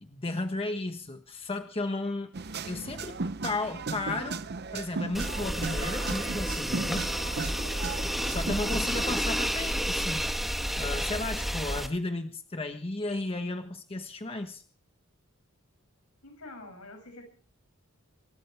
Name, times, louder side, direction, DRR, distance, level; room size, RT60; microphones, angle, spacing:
voice 1, 0.0-2.3 2.6-4.4 4.7-7.1 8.3-14.6, left 2 dB, 25° left, 6 dB, 1.3 m, -34 dB
sound 1, 2.3-9.2, right 4 dB, 50° right, 0.8 m, -36 dB
sound 2, 5.1-11.9, equal, ahead, 1.3 m, -31 dB
voice 2, 7.6-8.0 16.2-17.3, left 2 dB, 85° left, 3 dB, 7.8 m, -47 dB
25.5 x 14.0 x 3.5 m, 0.42 s
head